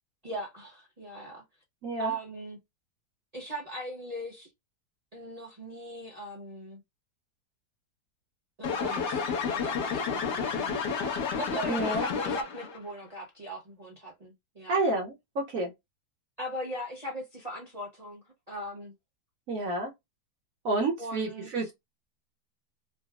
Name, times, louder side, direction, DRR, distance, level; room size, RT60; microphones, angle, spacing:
voice 1, 0.2-1.4 2.0-2.6 3.3-4.5 5.1-6.8 8.6-14.8 16.4-18.9 21.0-21.7, right 1 dB, 30° right, 0.7 m, -40 dB
voice 2, 1.8-2.1 11.7-12.0 14.7-15.7 19.5-19.9 20.6-21.7, right 2 dB, 60° right, 1.1 m, -29 dB
sound 1, 8.6-12.8, left 5 dB, 80° left, 1.5 m, -30 dB
3.9 x 2.0 x 2.3 m
omnidirectional pair, 1.8 m